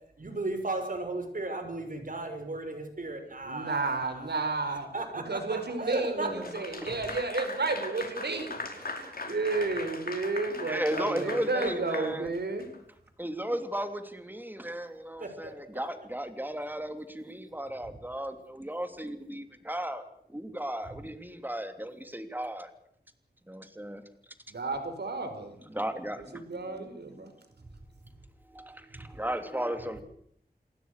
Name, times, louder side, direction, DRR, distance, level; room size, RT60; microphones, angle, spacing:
voice 1, 0.2-6.3 15.2-15.5 28.9-29.0, right 2 dB, 55° right, 6 dB, 6.2 m, -35 dB
voice 2, 3.4-4.9 5.1-12.7 24.5-25.6 26.2-27.3, right 3 dB, 90° right, 8 dB, 5.0 m, -32 dB
Clapping / Applause, 6.4-12.8, left 3 dB, 65° left, 5.2 m, -39 dB
voice 3, 10.7-12.3 13.2-20.0 20.3-22.7 23.5-24.0 25.7-27.2 28.5-30.0, right 1 dB, 10° right, 8 dB, 3.0 m, -35 dB
28.5 x 19.5 x 6.7 m, 0.70 s
wide cardioid pair, 90°, 17 cm